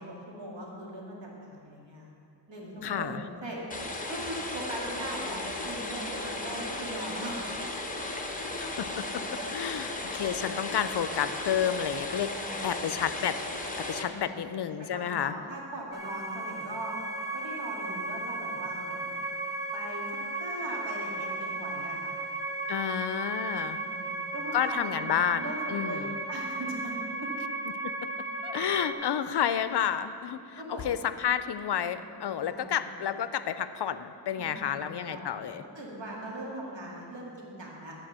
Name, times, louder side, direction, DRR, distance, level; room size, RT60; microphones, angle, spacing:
voice 1, 0.0-2.1 2.5-3.6 4.1-7.4 12.3-12.7 14.0-14.4 14.8-17.0 17.3-19.2 19.7-22.1 23.8-26.9 27.2-27.3 30.6-30.9 32.5-32.8 34.4-38.0, right 1 dB, 90° right, -3 dB, 2.2 m, -40 dB
voice 2, 2.8-3.2 8.6-9.1 9.5-12.3 12.6-13.4 13.8-15.3 22.7-23.8 24.5-26.2 27.8-27.9 28.4-35.6, left 9 dB, 65° left, 12 dB, 0.5 m, -30 dB
sound 1, 3.7-14.0, left 2 dB, 20° left, 0.9 m, -35 dB
sound 2, 15.9-28.9, right 2 dB, 10° right, 0.9 m, -35 dB
11.5 x 4.9 x 7.4 m, 2.4 s
wide cardioid pair, 120°, 44 cm